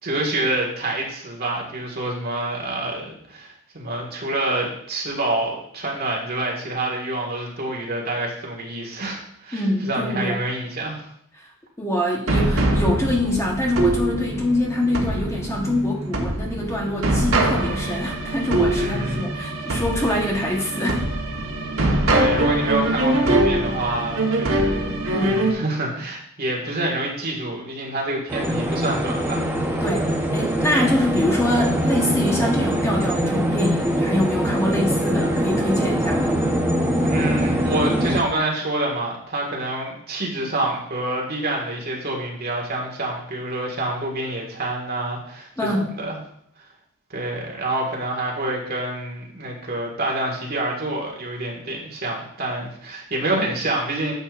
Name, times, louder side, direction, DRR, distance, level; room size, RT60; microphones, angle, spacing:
voice 1, 0.0-11.1 18.7-19.2 22.1-29.5 37.0-46.2 47.1-54.1, right 2 dB, 45° right, -1 dB, 1.7 m, -27 dB
voice 2, 9.5-10.4 11.8-21.1 25.1-25.5 29.8-30.1 30.3-36.4 45.6-45.9, left 1 dB, 15° left, -2 dB, 1.1 m, -24 dB
sound 1, 12.3-25.5, right 1 dB, 70° right, 1.2 m, -23 dB
sound 2, 28.3-38.2, equal, 10° right, 0.9 m, -23 dB
10.0 x 6.6 x 2.5 m, 0.68 s
head